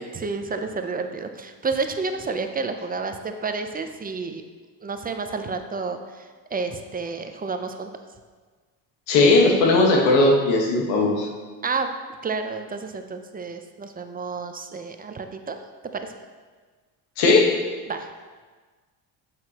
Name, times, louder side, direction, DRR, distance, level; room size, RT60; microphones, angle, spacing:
voice 1, 0.1-4.4 4.8-7.9 11.6-11.9 12.2-15.6 15.9-16.1 17.9-18.1, right 4 dB, 20° right, 7 dB, 0.5 m, -30 dB
voice 2, 9.1-11.3 17.2-17.5, left 2 dB, 90° left, 0 dB, 1.4 m, -17 dB
7.7 x 6.0 x 2.9 m, 1.4 s
supercardioid pair, 80°, 50 cm